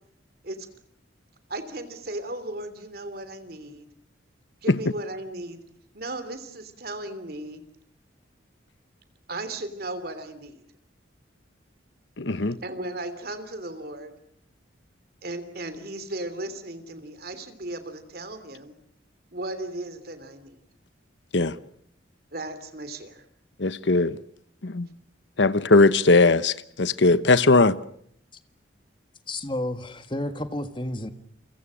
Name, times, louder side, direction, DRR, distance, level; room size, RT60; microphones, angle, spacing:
voice 1, 1.5-3.9 4.6-5.6 5.9-7.6 9.3-10.6 12.6-14.2 15.2-18.7 19.3-20.6 22.3-23.2, right 2 dB, 50° right, 3.1 m, -36 dB
voice 2, 12.2-12.6 21.3-21.5 23.6-24.2 24.6-24.9 25.4-27.8, left 3 dB, 70° left, 1.0 m, -19 dB
voice 3, 29.3-31.1, left 1 dB, 25° left, 1.6 m, -31 dB
29.5 x 24.0 x 6.3 m
head